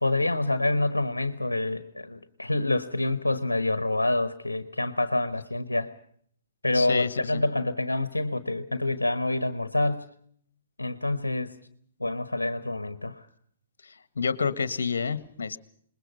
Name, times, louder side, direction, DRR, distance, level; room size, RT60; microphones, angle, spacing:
voice 1, 0.0-5.9 6.6-10.1 10.8-11.5 12.0-13.3, left 2 dB, 85° left, 12 dB, 1.3 m, -27 dB
voice 2, 6.7-7.4 13.8-15.6, left 5 dB, 65° left, 15 dB, 1.5 m, -29 dB
27.5 x 21.0 x 5.6 m, 0.62 s
figure-of-eight pair, 115°, 0 cm